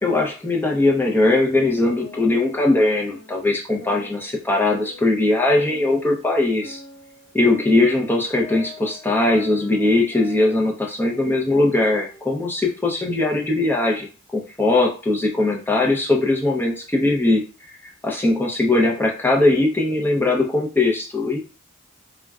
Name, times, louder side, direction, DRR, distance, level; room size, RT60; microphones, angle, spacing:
voice 1, 0.0-6.8 7.3-17.7 18.0-21.4, left 2 dB, 10° left, 0 dB, 0.4 m, -20 dB
sound 1, 1.3-3.4 3.8-6.2 6.6-10.7 11.0-13.0, equal, 30° left, 0.8 m, -43 dB
3.5 x 2.1 x 2.3 m, 0.35 s
head